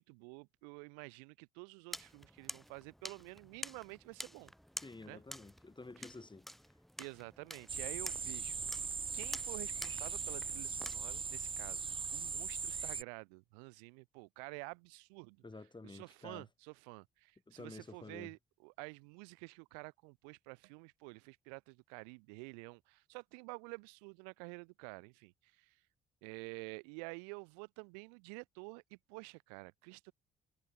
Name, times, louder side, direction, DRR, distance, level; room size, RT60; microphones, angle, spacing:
voice 1, 0.0-4.5 5.1-5.2 6.0-6.1 7.0-8.6 9.1-15.4 15.8-25.8 26.2-30.1, right 38 dB, 85° right, 7.0 m, -50 dB
sound 1, 1.9-11.0, equal, ahead, 3.0 m, -49 dB
voice 2, 4.8-6.5 15.4-16.5 17.5-18.3, left 3 dB, 20° left, 5.6 m, -50 dB
sound 2, 7.7-13.0, right 5 dB, 25° right, 0.6 m, -40 dB
hypercardioid pair, 50°, 20 cm